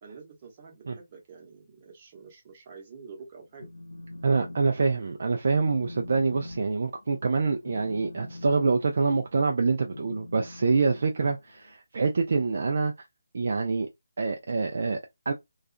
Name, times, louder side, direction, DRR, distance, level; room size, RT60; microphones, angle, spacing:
voice 1, 0.0-3.7, right 5 dB, 30° right, 1.0 m, -47 dB
Telephone, 3.4-4.6 4.9-5.2 5.6-11.7, left 2 dB, 75° left, 0.6 m, -44 dB
voice 2, 4.2-13.1 13.3-13.9 14.2-15.0 15.3-15.4, right 4 dB, 55° right, 0.4 m, -26 dB
2.4 x 2.3 x 2.6 m
figure-of-eight pair, 155°, 0 cm